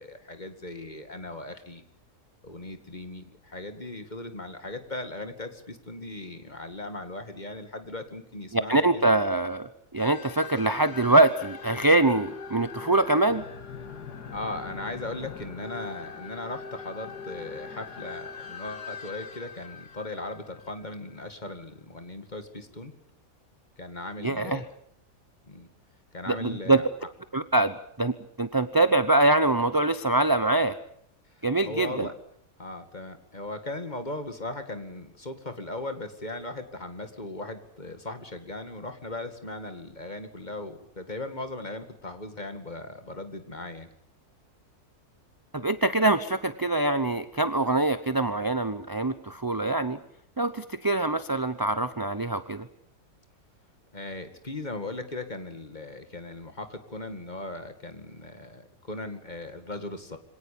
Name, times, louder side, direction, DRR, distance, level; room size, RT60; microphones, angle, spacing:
voice 1, 0.0-1.8 2.4-9.0 14.3-22.9 23.8-24.8 25.4-25.7 26.1-26.9 31.6-32.1 32.6-43.9 53.9-60.2, left 2 dB, 25° left, 8 dB, 2.4 m, -38 dB
voice 2, 8.5-13.5 24.2-24.6 26.3-26.8 27.3-30.8 31.4-32.1 45.5-50.0 50.4-52.7, right 2 dB, 20° right, 12 dB, 0.7 m, -24 dB
sound 1, 10.0-21.2, left 5 dB, 85° left, 2.3 m, -42 dB
25.5 x 18.0 x 8.7 m, 0.66 s
omnidirectional pair, 1.7 m